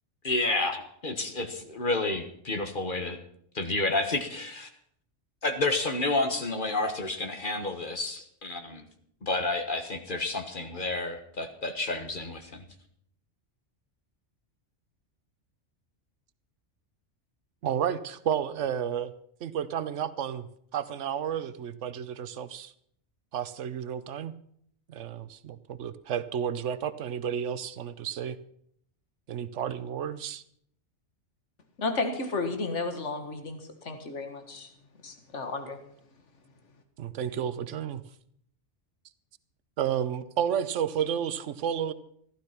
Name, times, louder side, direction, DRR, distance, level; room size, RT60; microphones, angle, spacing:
voice 1, 0.2-3.2 3.5-4.7 5.4-8.8 9.2-12.6, left 2 dB, 45° left, 6 dB, 1.6 m, -30 dB
voice 2, 17.6-19.1 19.4-22.7 23.3-24.3 24.9-28.4 29.3-30.4 37.0-38.0 39.8-41.9, right 9 dB, 90° right, 14 dB, 1.1 m, -31 dB
voice 3, 31.8-33.6 33.8-34.7 35.0-35.8, left 3 dB, 85° left, 7 dB, 2.0 m, -32 dB
15.0 x 12.0 x 5.8 m, 0.67 s
omnidirectional pair, 1.2 m